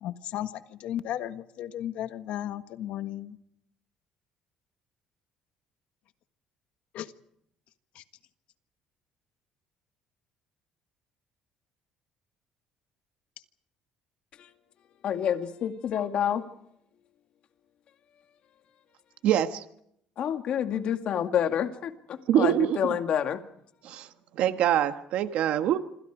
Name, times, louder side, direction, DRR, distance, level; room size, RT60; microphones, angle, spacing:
voice 1, 0.0-3.4 6.9-7.1 7.9-8.0, left 12 dB, 65° left, 10 dB, 1.5 m, -35 dB
voice 2, 15.0-16.4 20.2-23.4, left 9 dB, 50° left, 6 dB, 2.2 m, -28 dB
voice 3, 19.2-19.6 22.3-23.0 23.8-24.1 24.3-25.8, right 11 dB, 65° right, 8 dB, 1.4 m, -24 dB
27.0 x 27.0 x 5.0 m, 0.73 s
cardioid pair, 145°, 2 cm